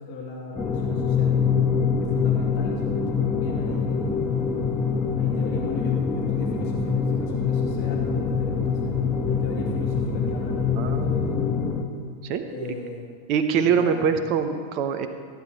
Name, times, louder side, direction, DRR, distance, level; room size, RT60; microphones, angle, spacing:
voice 1, 0.0-1.4 2.0-4.5 5.2-9.0 9.3-11.9 12.5-13.1 13.6-14.3, left 3 dB, 45° left, -2 dB, 2.2 m, -37 dB
sound 1, 0.6-11.8, left 6 dB, 20° left, 1.3 m, -25 dB
sound 2, 3.5-11.3, left 2 dB, 70° left, 1.4 m, -39 dB
voice 2, 10.8-12.7 13.3-15.1, right 6 dB, 40° right, 8 dB, 1.0 m, -25 dB
14.5 x 9.7 x 4.8 m, 2.1 s
figure-of-eight pair, 90°, 0 cm